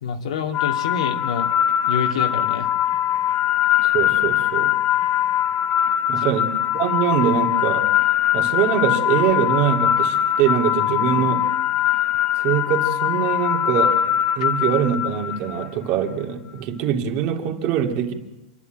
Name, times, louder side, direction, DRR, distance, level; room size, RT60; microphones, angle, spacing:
voice 1, 0.0-1.5 1.9-2.7 6.2-6.3, left 6 dB, 85° left, 3 dB, 2.5 m, -27 dB
sound 1, 0.5-15.7, left 11 dB, 30° left, 1.1 m, -21 dB
voice 2, 3.8-4.7 6.1-7.9 8.3-11.5 12.4-14.0 14.4-18.1, right 9 dB, 45° right, 3 dB, 2.5 m, -23 dB
27.0 x 11.5 x 9.1 m, 0.99 s
supercardioid pair, 145°, 3 cm